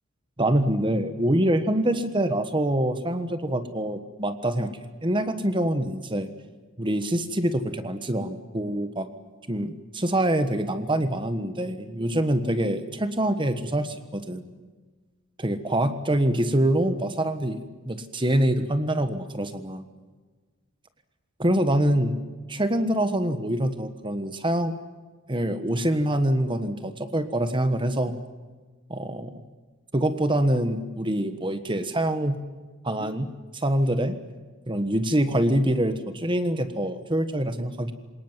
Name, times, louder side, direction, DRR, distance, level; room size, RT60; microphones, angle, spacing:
voice 1, 0.4-4.7 5.0-6.3 6.8-9.1 9.5-14.4 15.4-17.6 17.9-19.8 21.4-22.2 22.5-24.7 25.3-28.1 28.9-29.4 29.9-32.4 32.8-34.1 34.7-37.9, right 1 dB, 25° right, 9 dB, 1.4 m, -25 dB
27.5 x 19.0 x 9.2 m, 1.4 s
head